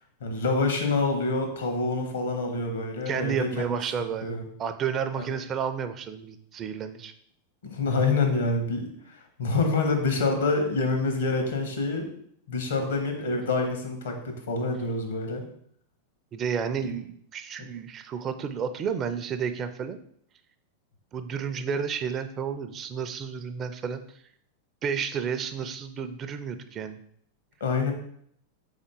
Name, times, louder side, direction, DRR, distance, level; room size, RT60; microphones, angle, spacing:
voice 1, 0.2-4.4 5.1-5.2 7.6-12.1 12.5-15.4 27.6-27.9, left 3 dB, 75° left, 4 dB, 1.0 m, -27 dB
voice 2, 3.1-7.1 16.3-20.0 21.1-24.0 24.8-27.0, right 7 dB, 35° right, 10 dB, 0.4 m, -31 dB
3.8 x 3.6 x 3.7 m, 0.66 s
figure-of-eight pair, 95°, 0 cm